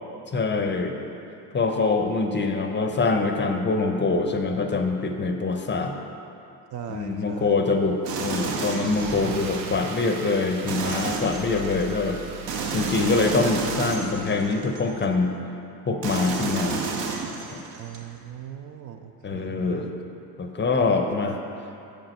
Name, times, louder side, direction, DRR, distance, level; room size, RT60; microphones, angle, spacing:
voice 1, 0.3-0.9 1.5-6.0 6.9-12.2 12.7-15.3 15.9-16.9 17.5-17.6 19.2-19.9 20.4-21.4, left 3 dB, 25° left, 5 dB, 0.6 m, -24 dB
voice 2, 6.7-7.6 17.8-19.9, right 8 dB, 40° right, 6 dB, 0.5 m, -39 dB
Car / Engine starting, 6.8-15.0, right 5 dB, 90° right, 0.6 m, -39 dB
sound 1, 8.1-9.6 10.7-11.9 12.5-15.1 16.0-18.0, right 4 dB, 65° right, 0.9 m, -31 dB
7.2 x 5.1 x 4.3 m, 2.7 s
hypercardioid pair, 60°, 48 cm